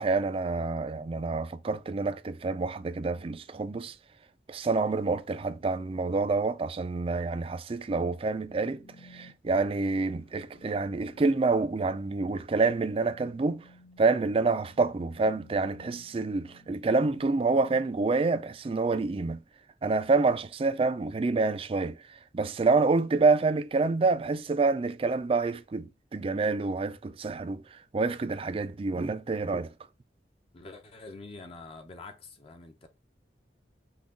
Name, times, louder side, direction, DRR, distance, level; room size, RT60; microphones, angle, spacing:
voice 1, 0.0-3.9 4.5-8.8 9.1-13.6 14.0-19.4 19.8-22.0 22.3-27.6 27.9-29.7, right 3 dB, 30° right, 0.4 m, -27 dB
sound 1, 8.2-17.9, left 1 dB, 65° left, 2.3 m, -56 dB
voice 2, 30.5-32.9, left 3 dB, 35° left, 0.6 m, -46 dB
5.9 x 2.3 x 3.6 m
head